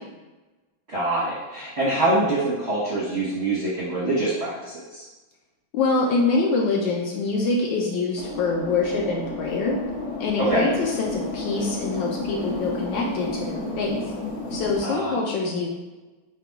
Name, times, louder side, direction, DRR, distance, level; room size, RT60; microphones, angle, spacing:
voice 1, 0.9-5.0 10.4-10.7 14.8-15.2, right 2 dB, 50° right, -8 dB, 0.8 m, -24 dB
voice 2, 5.7-9.8 10.2-14.1 14.5-15.7, left 3 dB, 70° left, -1 dB, 1.2 m, -25 dB
sound 1, 8.2-14.8, left 2 dB, 45° left, 1.0 m, -32 dB
4.9 x 2.3 x 4.5 m, 1.2 s
omnidirectional pair, 2.3 m